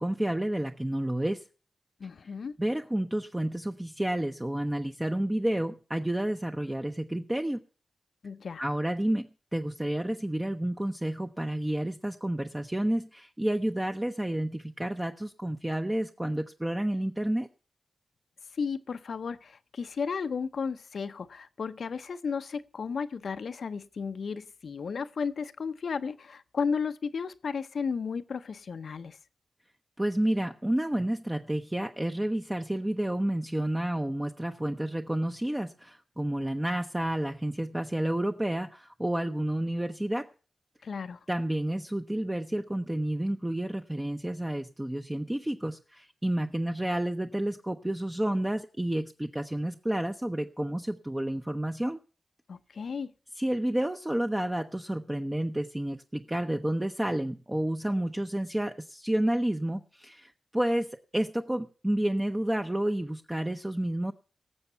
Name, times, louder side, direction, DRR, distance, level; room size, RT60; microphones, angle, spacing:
voice 1, 0.0-1.4 2.6-7.6 8.6-17.5 30.0-40.3 41.3-52.0 53.4-64.1, right 1 dB, 15° right, 0.7 m, -30 dB
voice 2, 2.0-2.6 8.2-8.6 18.5-29.2 40.8-41.2 52.5-53.1, left 5 dB, 75° left, 0.6 m, -34 dB
18.0 x 7.0 x 5.5 m
cardioid pair, 70°, 0 cm